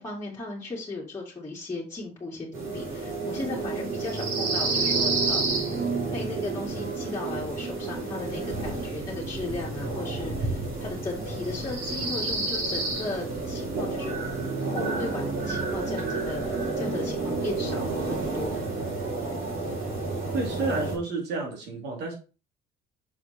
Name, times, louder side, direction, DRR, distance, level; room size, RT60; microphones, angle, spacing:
voice 1, 0.0-14.2 14.7-19.2, left 3 dB, 15° left, -6 dB, 2.3 m, -36 dB
sound 1, 2.5-21.0, right 3 dB, 55° right, 3.9 m, -30 dB
voice 2, 20.3-22.1, right 3 dB, 80° right, 0 dB, 2.7 m, -30 dB
6.5 x 4.2 x 4.3 m, 0.34 s
cardioid pair, 110°, 17 cm